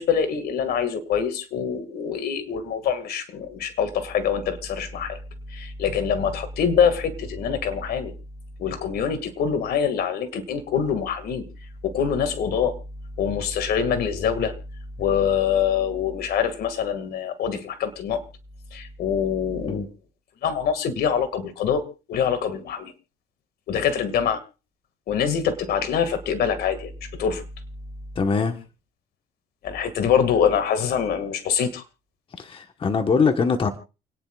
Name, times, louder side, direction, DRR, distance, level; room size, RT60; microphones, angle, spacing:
voice 1, 0.0-5.2 5.5-8.1 8.6-11.4 11.8-12.8 13.2-14.5 15.0-18.2 18.7-19.9 20.4-21.8 22.1-22.9 23.7-24.4 25.1-27.4 29.6-31.8, left 7 dB, 65° left, 10 dB, 2.0 m, -24 dB
voice 2, 28.1-28.6 32.4-33.7, left 5 dB, 30° left, 6 dB, 1.2 m, -22 dB
29.0 x 10.0 x 2.4 m, 0.32 s
cardioid pair, 110°, 17 cm